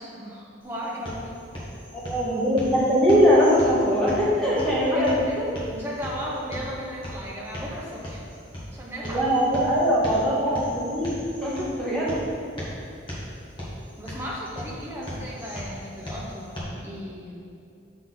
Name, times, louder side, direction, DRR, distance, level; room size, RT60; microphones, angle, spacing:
voice 1, 0.0-1.3 4.9-5.4 5.7-8.2 8.7-9.3 10.5-10.8 14.0-17.3, equal, 15° right, -5 dB, 1.2 m, -36 dB
sound 1, 0.6-16.6, equal, 25° left, 1.5 m, -38 dB
voice 2, 2.0-5.5 9.0-11.1 11.4-12.2, equal, 5° left, -9 dB, 1.8 m, -21 dB
7.0 x 5.9 x 4.0 m, 2.5 s
head